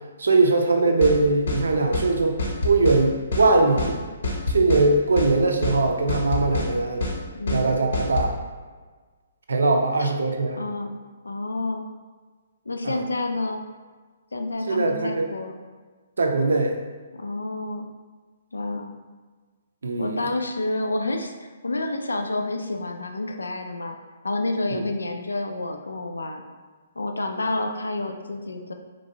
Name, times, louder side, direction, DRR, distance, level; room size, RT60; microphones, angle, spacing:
voice 1, 0.2-2.4 2.6-4.0 4.5-7.1 7.5-8.3 9.5-10.6 12.8-13.0 14.7-15.3 16.2-16.8 19.8-20.3 24.7-24.8, right 3 dB, 80° right, 3 dB, 0.4 m, -21 dB
sound 1, 1.0-1.2 1.5-1.6 1.9-2.1 2.4-3.0 3.3-3.5 3.8-3.9 4.2-4.9 5.2-5.3 5.6-5.8 6.1-6.7 7.0-7.2 7.5-7.6 7.9-8.3, left 2 dB, 65° left, 0.7 m, -26 dB
voice 2, 7.3-7.7 10.0-10.1 10.6-11.0 11.2-11.9 12.7-13.6 14.3-15.5 17.1-17.9 18.5-18.9 20.0-24.0 24.2-26.4 27.0-28.7, left 2 dB, 90° left, 4 dB, 0.3 m, -29 dB
3.0 x 2.6 x 2.6 m, 1.4 s
hypercardioid pair, 140°, 0 cm